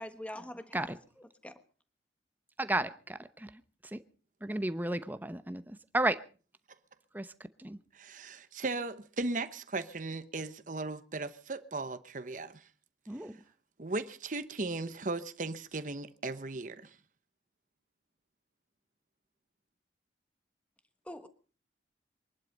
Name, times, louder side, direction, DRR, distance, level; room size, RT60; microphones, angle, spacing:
voice 1, 0.0-1.6 21.0-21.3, left 1 dB, 5° left, 1.3 m, -45 dB
voice 2, 2.6-3.5 3.9-4.0 4.4-5.6 5.9-6.2 7.1-7.3 7.6-7.8 13.1-13.3, right 1 dB, 10° right, 0.8 m, -32 dB
voice 3, 7.9-12.6 13.8-16.9, right 3 dB, 45° right, 1.0 m, -37 dB
24.0 x 11.5 x 5.3 m
head